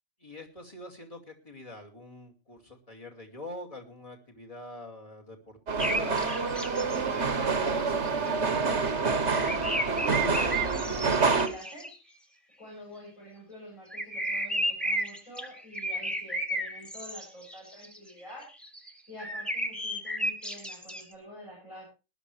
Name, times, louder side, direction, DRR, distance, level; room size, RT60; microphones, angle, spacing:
voice 1, 0.2-9.0, left 1 dB, 25° left, 1 dB, 2.5 m, -45 dB
sound 1, 5.7-11.5, right 4 dB, 60° right, 1.6 m, -27 dB
sound 2, 5.8-7.0 7.7-7.8 8.0-11.9 13.9-18.0 18.4-18.9 19.2-21.0, right 1 dB, ahead, 1.7 m, -33 dB
voice 2, 9.9-11.9 12.6-18.4 19.1-21.9, equal, 85° left, -5 dB, 8.4 m, -46 dB
20.0 x 11.5 x 3.3 m, 0.31 s
omnidirectional pair, 1.3 m